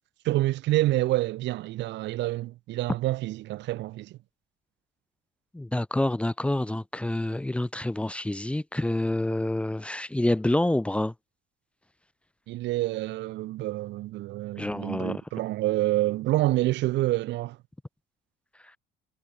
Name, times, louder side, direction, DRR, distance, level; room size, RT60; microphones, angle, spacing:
voice 1, 0.2-4.2 12.5-17.6, right 17 dB, 70° right, 2.5 m, -27 dB
voice 2, 5.5-11.1 14.6-15.2, left 1 dB, 5° left, 1.7 m, -27 dB
cardioid pair, 135°, 19 cm